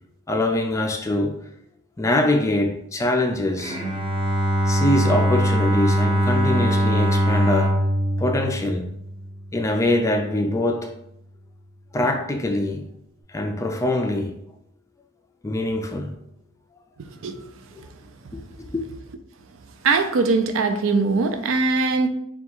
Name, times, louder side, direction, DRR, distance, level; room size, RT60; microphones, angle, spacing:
voice 1, 0.3-1.4 2.0-3.8 4.7-7.8 8.2-8.9 9.5-10.9 11.9-12.9 13.3-14.3 15.4-16.2 17.7-17.9 18.3-18.8, left 1 dB, 15° left, 0.3 m, -23 dB
Bowed string instrument, 3.6-9.5, equal, 25° right, 0.6 m, -22 dB
voice 2, 19.8-22.1, right 4 dB, 70° right, 0.4 m, -21 dB
3.5 x 2.3 x 4.4 m
head